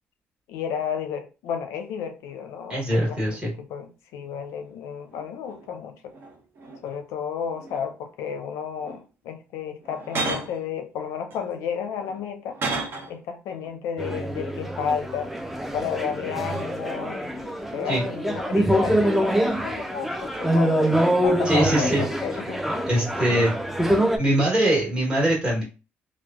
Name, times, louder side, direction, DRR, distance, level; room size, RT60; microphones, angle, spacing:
voice 1, 0.5-6.1 6.8-12.6 13.1-15.3 15.7-22.6 23.4-23.6, left 7 dB, 90° left, 0.5 m, -32 dB
sound 1, 2.2-2.3 2.9-3.4 4.2-5.7 6.1-7.1 7.5-8.1 8.8-9.1 9.8-10.6 11.3-13.2 13.5-13.8, right 3 dB, 55° right, 0.7 m, -35 dB
voice 2, 2.7-3.5 17.9-18.0 21.4-22.0 22.8-23.5 24.2-25.6, right 1 dB, 20° right, 1.2 m, -22 dB
sound 2, 14.0-24.2, right 1 dB, 5° right, 0.4 m, -25 dB
3.1 x 2.0 x 2.3 m
cardioid pair, 90°, 5 cm